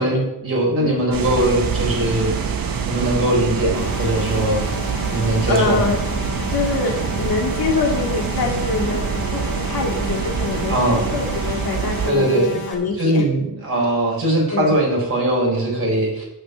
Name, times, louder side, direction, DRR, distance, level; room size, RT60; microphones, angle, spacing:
voice 1, 0.0-2.4 2.9-4.7 5.1-5.9 10.7-11.1 12.0-12.6 13.0-16.2, right 1 dB, 35° right, -3 dB, 4.6 m, -20 dB
sound 1, 1.1-12.1, right 6 dB, 70° right, 1.3 m, -25 dB
sound 2, 3.7-12.7, left 3 dB, 50° left, 3.4 m, -33 dB
voice 2, 5.5-6.0 6.5-9.0 9.3-13.2 14.5-14.8, left 4 dB, 75° left, -1 dB, 2.5 m, -24 dB
9.5 x 6.0 x 8.3 m, 0.88 s
wide cardioid pair, 165°, 37 cm